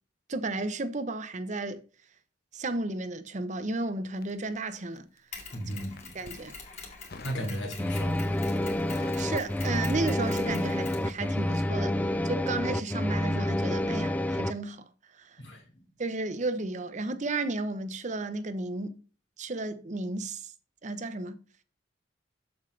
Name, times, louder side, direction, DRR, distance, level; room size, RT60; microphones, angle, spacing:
voice 1, 0.3-1.8 2.5-5.1 6.1-6.5 9.1-15.4 16.0-18.9 19.4-20.5 20.8-21.4, right 2 dB, 40° right, 0.7 m, -33 dB
Crackle, 4.2-5.3 5.8-6.4 7.1-7.5 7.9-8.4 8.6-10.6 10.8-11.1, left 2 dB, 55° left, 0.9 m, -47 dB
Mechanisms, 5.3-11.6, left 4 dB, 40° left, 2.6 m, -46 dB
voice 2, 5.5-6.1 7.2-8.3 15.4-15.6, equal, 80° left, 2.9 m, -35 dB
sound 1, 7.8-14.5, left 1 dB, 10° left, 0.4 m, -28 dB
7.7 x 7.1 x 3.2 m
head